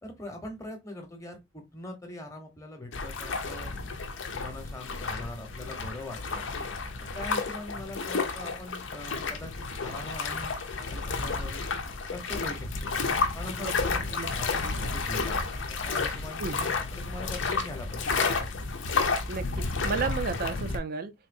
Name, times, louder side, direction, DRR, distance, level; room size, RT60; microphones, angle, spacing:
voice 1, 0.0-3.7 4.3-6.5 7.1-11.7 12.1-12.9 13.3-15.4 15.9-18.0, left 1 dB, 15° left, 0.9 m, -42 dB
sound 1, 2.9-20.8, left 4 dB, 75° left, 0.7 m, -31 dB
voice 2, 14.6-14.9 16.4-16.6 19.3-21.1, right 4 dB, 50° right, 0.4 m, -33 dB
3.7 x 2.8 x 2.5 m
head